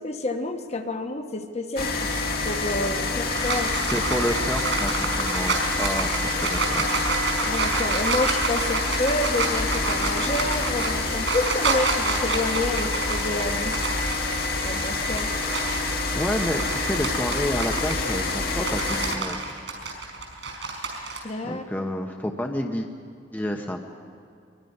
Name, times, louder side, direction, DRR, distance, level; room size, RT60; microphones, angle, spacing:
voice 1, 0.0-2.1 2.4-3.7 7.4-13.8 14.6-15.3 21.2-21.9, left 2 dB, 35° left, 5 dB, 1.2 m, -29 dB
sound 1, 1.8-19.2, left 3 dB, 55° left, 2.2 m, -27 dB
sound 2, 3.0-15.8 16.3-21.2, right 3 dB, 80° right, 5.2 m, -29 dB
voice 2, 3.9-7.0 16.1-19.6 21.4-22.9 23.3-23.8, equal, 10° left, 3 dB, 0.9 m, -29 dB
23.0 x 22.5 x 5.5 m, 2.3 s
head